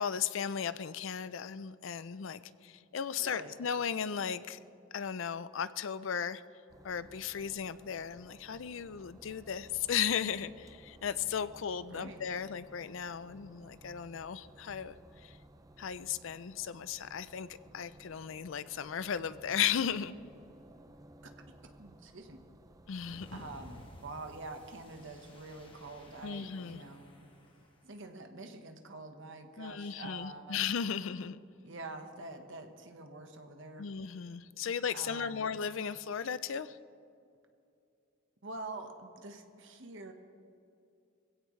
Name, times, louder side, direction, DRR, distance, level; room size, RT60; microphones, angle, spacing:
voice 1, 0.0-4.6 4.9-6.4 6.8-15.0 15.2-15.4 15.8-17.5 17.7-20.1 22.9-23.4 26.2-26.8 29.6-31.4 33.8-36.8, left 7 dB, 65° left, 15 dB, 0.5 m, -36 dB
voice 2, 3.2-3.5 11.9-12.3 21.2-21.3 21.8-22.4 23.3-27.2 27.8-30.6 31.6-33.9 34.9-35.5 38.4-40.1, right 2 dB, 60° right, 5 dB, 1.3 m, -46 dB
sound 1, 6.7-26.3, right 1 dB, 15° right, 0.6 m, -58 dB
sound 2, 22.9-27.8, left 1 dB, 25° left, 1.6 m, -55 dB
21.0 x 16.5 x 3.2 m, 2.6 s
head